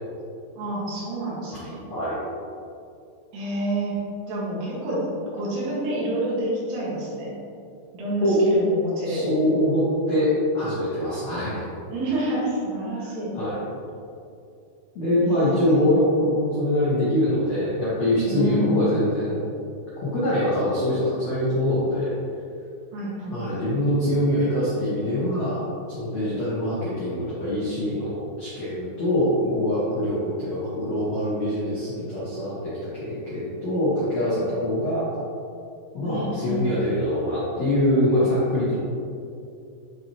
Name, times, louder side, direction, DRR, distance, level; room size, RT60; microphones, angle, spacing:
voice 1, 0.6-1.9 3.3-3.9 4.3-5.1 5.3-7.4 7.9-9.3 11.9-13.3 15.2-15.8 18.2-18.8 22.9-23.6 36.0-36.7, right 1 dB, 75° right, -7 dB, 4.3 m, -28 dB
voice 2, 9.0-11.6 12.9-13.6 14.9-19.4 20.0-22.1 23.3-35.1 35.9-38.8, left 1 dB, 85° left, -10 dB, 1.4 m, -24 dB
11.0 x 4.7 x 3.0 m, 2.5 s
omnidirectional pair, 5.7 m